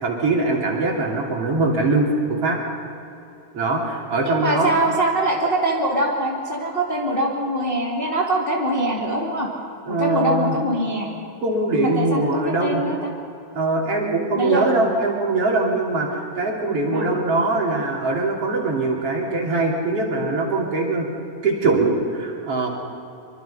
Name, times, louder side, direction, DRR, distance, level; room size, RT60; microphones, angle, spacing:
voice 1, 0.0-2.6 3.5-4.7 9.9-10.6 11.4-12.8 13.5-21.1 21.4-22.7, right 2 dB, 50° right, -2 dB, 4.0 m, -22 dB
voice 2, 4.2-9.5 9.9-11.1 11.7-13.1 14.4-14.6 16.9-17.1, right 1 dB, 20° left, -3 dB, 2.5 m, -23 dB
25.0 x 24.5 x 5.7 m, 2.7 s
omnidirectional pair, 3.6 m